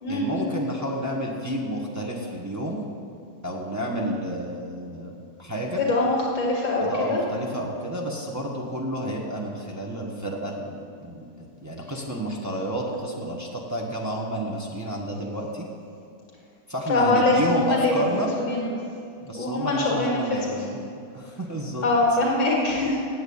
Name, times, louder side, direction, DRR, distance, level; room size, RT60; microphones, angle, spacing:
voice 1, 0.1-2.8 3.4-5.8 6.8-15.6 16.7-18.3 19.2-20.8 21.1-21.9, equal, 10° right, -3 dB, 0.8 m, -30 dB
voice 2, 5.8-7.2 16.9-17.9 18.5-18.6 19.3-20.6 21.8-23.0, left 2 dB, 60° left, -4 dB, 2.7 m, -23 dB
9.0 x 7.8 x 8.6 m, 2.5 s
omnidirectional pair, 2.2 m